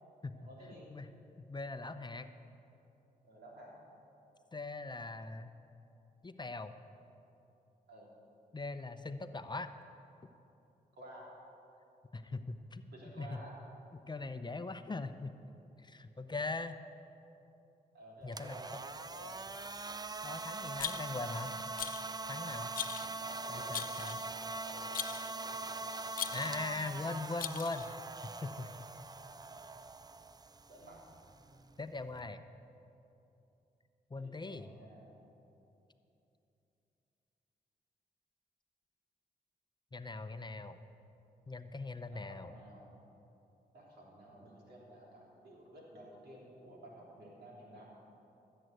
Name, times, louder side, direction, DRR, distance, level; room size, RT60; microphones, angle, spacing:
voice 1, 0.4-0.9 3.2-3.8 7.9-8.1 11.0-11.3 12.9-13.5 17.9-19.4 22.5-26.0 30.7-31.0 34.2-35.2 42.1-42.9 43.7-47.8, right 1 dB, 80° right, -3 dB, 3.4 m, -53 dB
voice 2, 1.5-2.3 4.5-5.5 6.2-6.7 8.5-9.7 12.1-12.8 13.2-13.4 14.1-15.4 15.8-16.8 18.2-18.8 20.2-21.6 22.3-22.7 23.5-24.2 26.3-28.9 31.8-32.4 34.1-34.7 39.9-40.8 41.5-42.5, left 3 dB, 25° left, 9 dB, 0.7 m, -41 dB
sound 1, 18.2-32.3, right 3 dB, 25° right, 0.5 m, -43 dB
Rattle, 20.8-21.3 21.8-22.1 22.7-23.1 23.7-24.3 24.9-25.3 26.1-26.6 27.4-27.9, left 9 dB, 60° left, 0.4 m, -40 dB
13.5 x 7.7 x 8.0 m, 2.9 s
cardioid pair, 55°, 17 cm